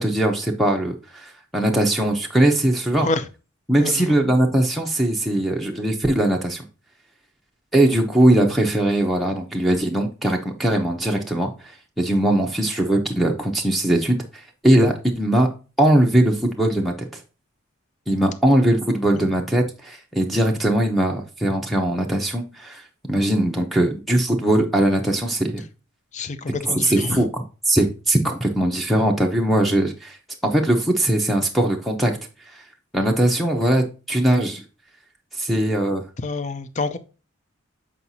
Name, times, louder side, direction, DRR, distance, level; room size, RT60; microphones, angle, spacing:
voice 1, 0.0-3.1 3.7-6.6 7.7-11.7 12.0-15.5 15.8-17.2 18.1-25.6 26.6-30.2 30.4-32.1 32.5-32.6 32.9-34.6 35.3-36.0, right 1 dB, ahead, 0.7 m, -20 dB
voice 2, 3.8-4.1 19.1-19.3 26.1-27.3 36.2-37.0, left 3 dB, 35° left, 0.5 m, -27 dB
7.7 x 4.8 x 2.7 m
head